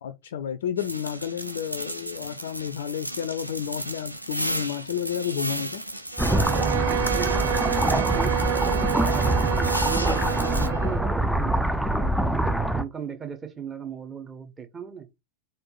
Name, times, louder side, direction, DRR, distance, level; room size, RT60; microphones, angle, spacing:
voice 1, 0.0-5.8, left 9 dB, 60° left, 0.7 m, -31 dB
sound 1, 0.8-10.7, right 1 dB, 90° right, 0.9 m, -34 dB
Bowed string instrument, 6.1-11.1, right 11 dB, 60° right, 0.8 m, -28 dB
sound 2, 6.2-12.8, right 1 dB, ahead, 0.7 m, -24 dB
voice 2, 7.1-15.1, right 6 dB, 15° right, 1.4 m, -37 dB
4.9 x 4.4 x 5.7 m
figure-of-eight pair, 90°, 0 cm